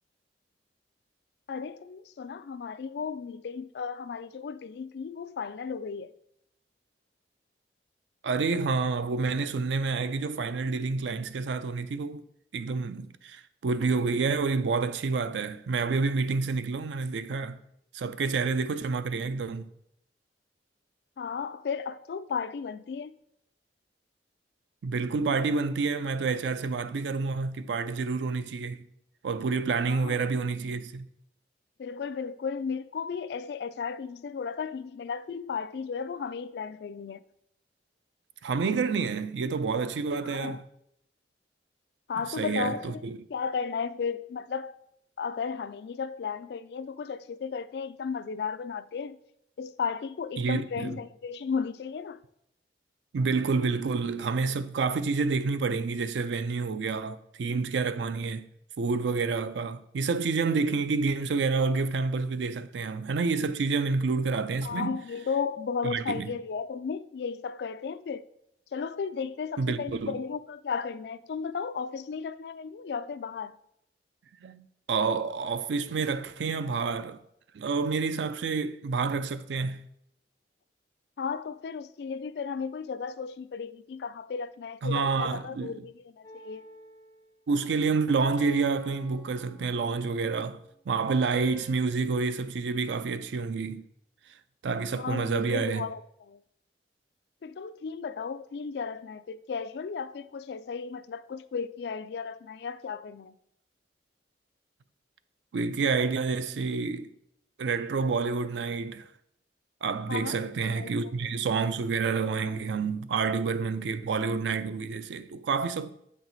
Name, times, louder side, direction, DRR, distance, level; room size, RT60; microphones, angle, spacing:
voice 1, 1.5-6.1 21.2-23.1 29.9-30.2 31.8-37.2 40.2-40.6 42.1-43.0 43.3-44.7 45.2-49.2 49.6-52.2 64.6-68.3 68.7-73.6 81.2-86.6 94.9-96.4 97.4-103.3 110.1-111.3, left 6 dB, 65° left, 0.3 m, -34 dB
voice 2, 8.2-12.2 12.5-17.6 17.9-19.7 24.8-28.9 29.2-31.1 38.4-40.6 42.4-43.2 50.4-51.0 53.1-58.5 58.8-65.0 65.8-66.3 69.6-70.2 74.4-77.2 77.5-79.8 84.8-85.7 87.5-93.8 94.6-95.9 105.5-107.1 107.6-109.1 109.8-115.9, right 4 dB, 85° right, 0.4 m, -28 dB
sound 1, 86.2-87.2 88.4-90.3 91.4-91.8, right 1 dB, 20° left, 0.9 m, -46 dB
7.9 x 4.5 x 3.9 m
head